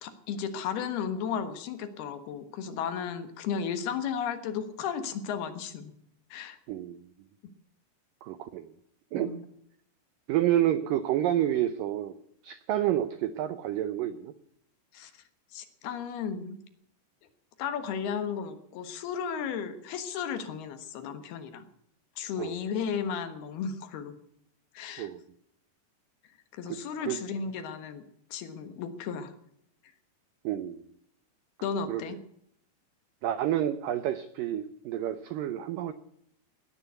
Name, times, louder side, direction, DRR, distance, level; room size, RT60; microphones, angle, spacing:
voice 1, 0.0-5.9 6.3-6.6 7.4-7.5 9.2-9.4 14.9-15.1 15.5-16.6 17.6-21.6 22.2-24.1 24.7-25.1 26.5-28.0 28.3-29.3 31.6-32.2, left 7 dB, 70° left, 9 dB, 3.2 m, -34 dB
voice 2, 6.7-7.0 8.2-8.7 9.1-9.3 10.3-12.2 12.4-14.3 22.4-22.6 25.0-25.2 26.7-27.2 30.4-30.9 31.9-32.0 33.2-35.9, right 12 dB, 80° right, 12 dB, 1.9 m, -29 dB
18.0 x 9.8 x 8.0 m, 0.72 s
omnidirectional pair, 4.9 m